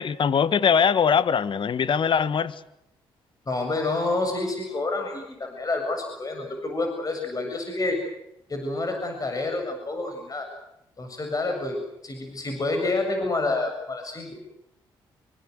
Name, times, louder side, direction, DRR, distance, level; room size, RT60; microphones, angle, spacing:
voice 1, 0.0-2.5, left 7 dB, 55° left, 15 dB, 1.5 m, -21 dB
voice 2, 3.5-8.0 8.5-10.5 11.0-14.3, left 2 dB, 35° left, 4 dB, 7.2 m, -28 dB
26.0 x 24.5 x 8.0 m, 0.83 s
supercardioid pair, 60°, 10 cm